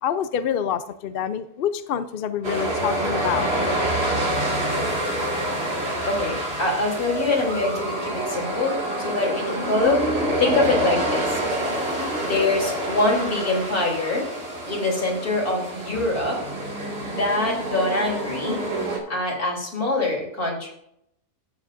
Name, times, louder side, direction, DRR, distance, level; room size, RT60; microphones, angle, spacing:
voice 1, 0.0-3.6, left 9 dB, 60° left, 12 dB, 0.6 m, -27 dB
sound 1, 2.4-19.0, right 1 dB, 40° right, 2.4 m, -27 dB
voice 2, 6.1-11.4 12.2-14.3 14.7-16.5 17.1-18.6 19.1-20.7, left 2 dB, 75° left, -2 dB, 3.8 m, -24 dB
14.5 x 7.5 x 2.5 m, 0.75 s
omnidirectional pair, 1.6 m